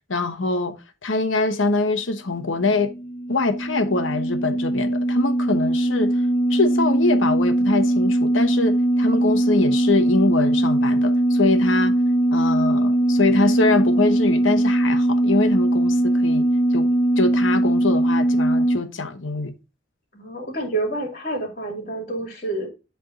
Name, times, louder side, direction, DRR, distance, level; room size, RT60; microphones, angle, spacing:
voice 1, 0.1-2.9 3.3-6.2 6.5-11.9 12.3-16.9 17.2-19.5, left 3 dB, 85° left, 1.1 m, -24 dB
sound 1, 2.6-18.8, right 1 dB, 5° left, 1.6 m, -20 dB
voice 2, 20.1-22.7, right 2 dB, 40° left, 2.5 m, -28 dB
10.5 x 3.6 x 3.7 m
head